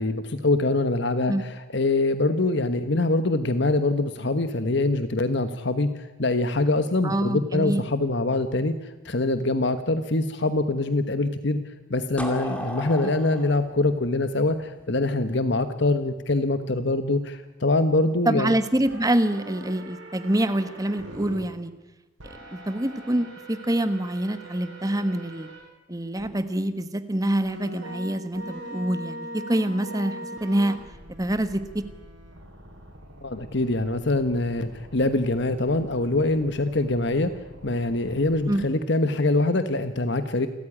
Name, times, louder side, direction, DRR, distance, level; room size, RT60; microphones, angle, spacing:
voice 1, 0.0-5.9 6.2-8.7 9.0-11.6 11.9-18.5 33.2-37.3 37.6-40.5, left 2 dB, 60° left, 10 dB, 1.3 m, -24 dB
voice 2, 7.0-7.8 13.0-13.1 18.3-21.7 22.5-25.5 25.9-30.8 31.2-31.8 38.5-38.6, right 1 dB, 15° right, 11 dB, 1.2 m, -26 dB
sound 1, 12.2-15.0, left 1 dB, 5° left, 2.5 m, -35 dB
sound 2, 18.9-21.4 22.2-25.6 26.2-26.3 27.4-38.7, right 1 dB, 65° right, 7.6 m, -42 dB
29.0 x 14.0 x 10.0 m, 1.1 s
head